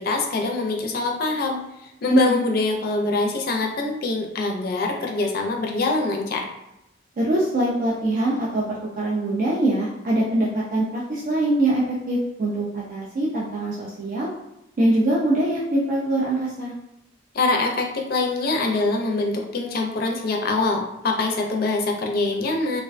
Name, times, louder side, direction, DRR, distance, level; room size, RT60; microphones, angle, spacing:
voice 1, 0.0-1.6 2.0-6.5 17.3-22.8, left 3 dB, 55° left, 2 dB, 0.4 m, -24 dB
voice 2, 2.1-2.4 7.2-14.3 14.8-16.7, right 1 dB, 45° right, -5 dB, 0.4 m, -23 dB
2.4 x 2.1 x 2.4 m, 0.89 s
head